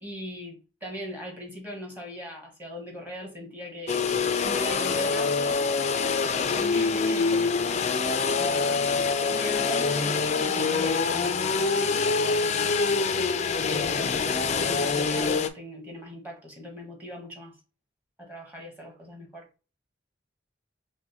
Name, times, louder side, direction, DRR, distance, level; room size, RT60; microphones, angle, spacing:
voice 1, 0.0-4.0 4.4-7.9 8.4-8.9 9.3-12.9 13.7-14.3 14.6-17.6 18.2-19.5, equal, 10° right, 1.3 m, -40 dB
sound 1, 3.9-15.5, left 4 dB, 40° left, 0.4 m, -25 dB
6.0 x 2.2 x 3.0 m
head